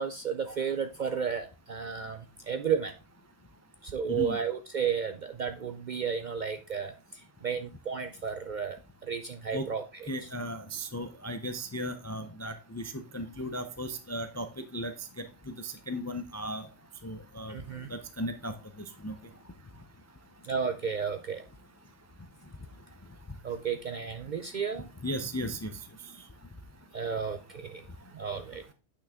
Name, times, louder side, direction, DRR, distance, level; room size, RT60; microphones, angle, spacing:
voice 1, 0.0-2.9 3.8-6.9 7.4-10.3 17.5-17.9 20.4-21.4 23.4-24.9 26.9-27.8 28.1-28.6, right 6 dB, 55° right, 7 dB, 0.5 m, -33 dB
voice 2, 10.1-16.7 17.0-17.6 17.9-18.6 19.0-19.2 25.0-25.7, equal, 25° left, 9 dB, 0.3 m, -36 dB
8.4 x 6.1 x 3.5 m, 0.32 s
omnidirectional pair, 1.3 m